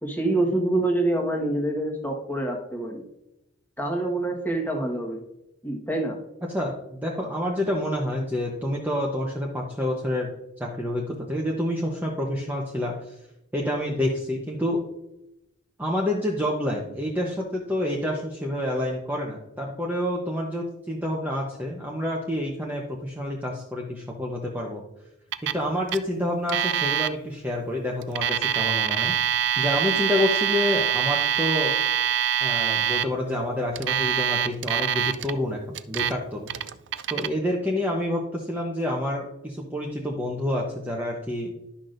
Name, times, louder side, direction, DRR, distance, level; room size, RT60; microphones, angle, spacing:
voice 1, 0.0-3.0 3.8-5.2 5.6-6.2, right 2 dB, 10° left, 1 dB, 1.3 m, -26 dB
voice 2, 6.5-10.3 10.6-13.1 13.5-14.8 15.8-24.8 25.5-29.1 29.6-31.7 32.4-35.6 35.9-36.5 37.1-41.5, left 1 dB, 10° right, -2 dB, 0.8 m, -28 dB
Alarm, 25.3-25.6 25.9-26.0 26.5-27.1 28.0-33.0 33.8-35.3 35.7-36.1 36.5-37.3, right 9 dB, 55° right, 0.4 m, -24 dB
12.0 x 6.0 x 2.6 m, 0.87 s
head